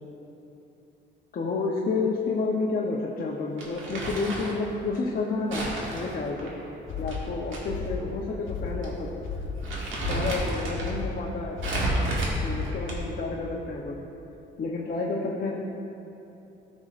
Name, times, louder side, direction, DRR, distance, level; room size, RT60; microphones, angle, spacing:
voice 1, 1.3-6.5 7.0-9.1 10.1-11.6 12.4-14.0 14.6-15.5, left 3 dB, 45° left, -1 dB, 0.8 m, -30 dB
Crumpling crinkling, 3.6-4.6 5.5-7.6 7.9-8.0 8.8-9.0 9.4-10.9 11.6-13.2, right 1 dB, 75° right, 2.0 m, -31 dB
monster galloping, 6.9-12.9, left 5 dB, 80° left, 1.1 m, -34 dB
14.0 x 6.3 x 2.5 m, 2.9 s
cardioid pair, 90°, 20 cm